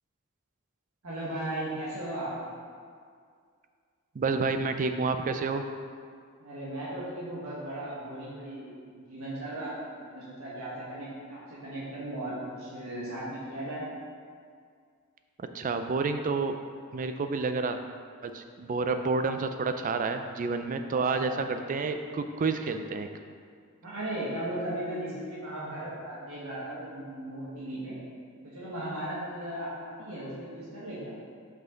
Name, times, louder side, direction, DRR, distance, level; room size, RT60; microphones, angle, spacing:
voice 1, 1.0-2.3 6.4-13.8 20.9-21.4 23.8-28.0 28.4-31.1, right 1 dB, 90° right, -8 dB, 1.5 m, -37 dB
voice 2, 4.2-5.6 15.4-16.6 16.9-17.8 18.2-23.1, right 4 dB, 40° right, 7 dB, 0.4 m, -29 dB
5.9 x 5.4 x 3.8 m, 2.1 s
head